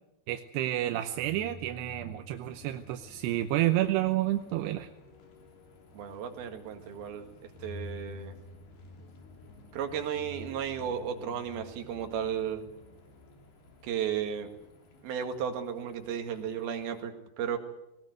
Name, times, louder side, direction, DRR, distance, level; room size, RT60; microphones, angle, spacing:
voice 1, 0.3-4.9, right 14 dB, 85° right, 7 dB, 3.0 m, -30 dB
sound 1, 0.9-17.0, left 2 dB, 75° left, 5.3 m, -50 dB
voice 2, 5.9-8.4 9.7-12.6 13.8-14.5 15.0-17.6, right 8 dB, 70° right, 5 dB, 3.6 m, -34 dB
20.5 x 19.5 x 8.0 m, 0.91 s
omnidirectional pair, 4.8 m